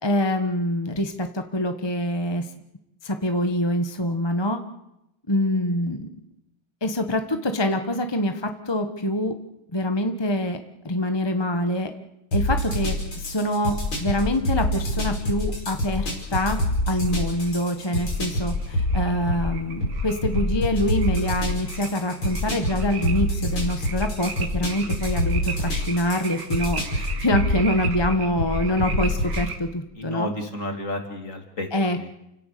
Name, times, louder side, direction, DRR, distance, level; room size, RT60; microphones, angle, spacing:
voice 1, 0.0-2.5 3.0-4.6 5.3-6.1 6.8-9.3 9.7-11.9 12.3-16.6 16.9-30.3 31.7-32.2, left 1 dB, 15° left, 6 dB, 1.0 m, -25 dB
sound 1, 12.3-29.5, left 1 dB, 90° left, 6.2 m, -27 dB
sound 2, 15.8-29.6, right 6 dB, 75° right, 2.5 m, -39 dB
voice 2, 30.0-31.7 32.0-32.2, left 2 dB, 40° left, 4 dB, 3.1 m, -31 dB
30.0 x 17.0 x 6.8 m, 0.87 s
omnidirectional pair, 2.2 m